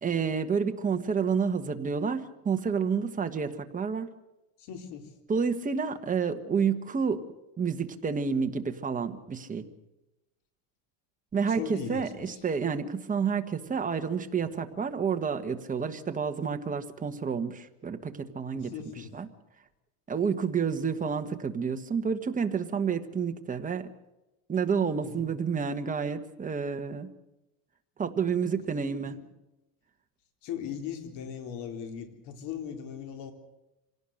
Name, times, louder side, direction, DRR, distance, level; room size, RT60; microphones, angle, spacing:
voice 1, 0.0-4.1 5.3-7.2 7.6-9.7 11.3-19.3 20.1-23.9 24.5-27.1 28.0-29.2, right 6 dB, 20° right, 6 dB, 1.4 m, -29 dB
voice 2, 4.6-5.1 11.5-12.4 18.5-19.1 25.0-25.3 28.9-29.2 30.4-33.3, left 8 dB, 60° left, 6 dB, 4.0 m, -39 dB
25.5 x 18.0 x 6.6 m, 0.98 s
cardioid pair, 140°, 44 cm